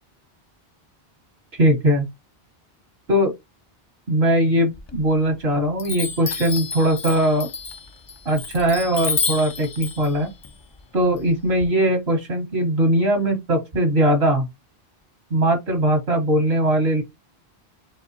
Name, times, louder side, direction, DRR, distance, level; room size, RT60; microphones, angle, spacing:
voice 1, 1.5-2.1 3.1-3.3 4.1-7.5 8.3-10.3 10.9-14.5 15.3-17.0, right 1 dB, 80° right, 1.8 m, -20 dB
Chime, 4.7-5.4 5.8-11.6, left 5 dB, 35° left, 0.5 m, -30 dB
4.8 x 3.2 x 3.0 m
omnidirectional pair, 1.1 m